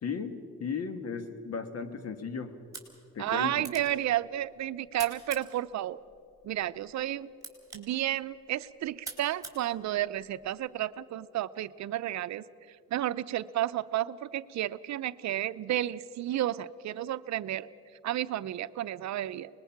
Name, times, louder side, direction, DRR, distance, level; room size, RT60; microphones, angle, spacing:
voice 1, 0.0-2.5 3.1-3.7, left 5 dB, 55° left, 9 dB, 1.6 m, -36 dB
sound 1, 2.6-10.6, right 3 dB, 10° right, 4.1 m, -49 dB
voice 2, 3.2-6.0 6.4-7.3 7.7-12.4 12.9-17.7 18.0-19.5, right 13 dB, 65° right, 14 dB, 0.6 m, -32 dB
25.0 x 20.5 x 5.9 m, 2.5 s
cardioid pair, 90°, 30 cm